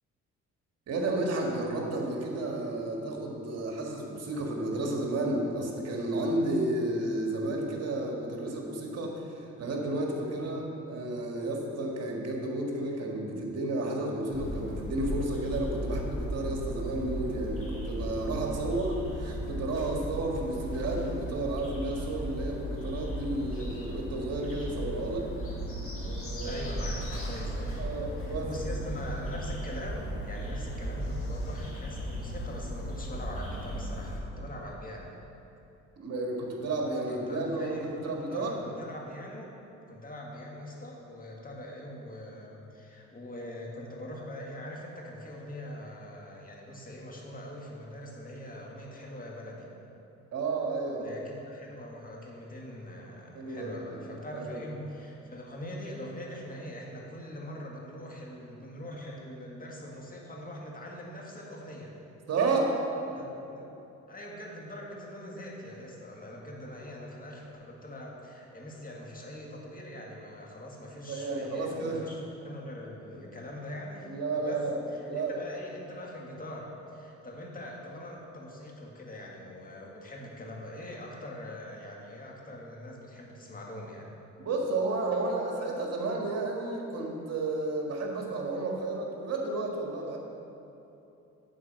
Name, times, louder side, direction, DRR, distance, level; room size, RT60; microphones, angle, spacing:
voice 1, 0.9-25.3 26.0-26.6 27.8-28.5 36.0-38.6 50.3-51.1 53.3-54.1 54.3-54.6 62.3-62.7 71.1-72.0 74.0-74.8 75.1-75.4 84.4-90.2, right 2 dB, 55° right, 0 dB, 1.7 m, -32 dB
sound 1, 14.3-34.2, equal, 45° left, 1.9 m, -36 dB
voice 2, 18.5-18.8 26.4-27.8 28.1-35.1 37.1-39.6 39.9-49.7 51.0-61.9 63.1-63.2 63.6-63.7 64.1-72.2 72.4-84.1, left 1 dB, 30° left, -2 dB, 1.8 m, -42 dB
8.8 x 4.6 x 7.4 m, 2.9 s
cardioid pair, 90°, 30 cm